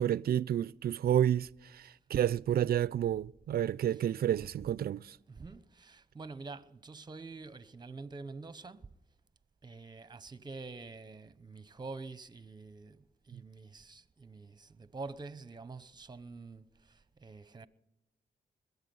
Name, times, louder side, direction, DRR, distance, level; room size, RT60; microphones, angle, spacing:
voice 1, 0.0-1.5 1.7-1.8 2.1-5.2, right 10 dB, 60° right, 0.4 m, -29 dB
voice 2, 5.3-8.9 9.6-17.7, right 3 dB, 25° right, 0.8 m, -47 dB
21.5 x 8.2 x 5.5 m
cardioid pair, 70°, 18 cm